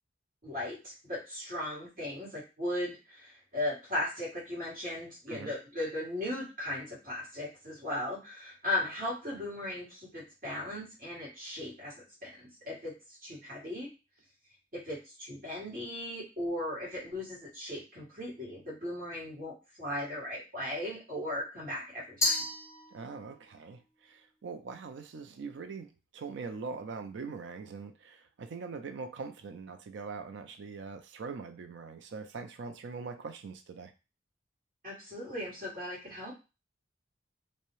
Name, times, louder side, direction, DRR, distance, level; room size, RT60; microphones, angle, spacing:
voice 1, 0.4-11.9 12.2-13.9 14.7-22.4 34.8-36.3, left 1 dB, 45° right, -7 dB, 1.5 m, -37 dB
Glass, 22.2-23.4, left 2 dB, 15° left, 0.4 m, -32 dB
voice 2, 22.9-33.9, right 4 dB, 75° right, 7 dB, 0.4 m, -42 dB
2.7 x 2.0 x 3.0 m, 0.30 s
head